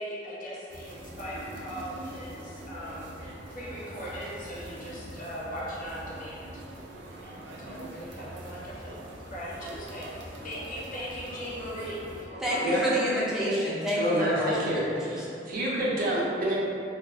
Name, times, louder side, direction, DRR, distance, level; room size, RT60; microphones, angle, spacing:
voice 1, 0.0-6.4 7.2-13.0, equal, 50° left, -6 dB, 0.7 m, -39 dB
sound 1, 0.7-12.3, right 1 dB, 90° right, 0.4 m, -43 dB
voice 2, 12.4-15.3, equal, 5° right, -8 dB, 0.6 m, -29 dB
voice 3, 13.9-14.8 15.1-16.5, equal, 55° right, -6 dB, 0.7 m, -27 dB
2.5 x 2.4 x 3.5 m, 2.6 s
head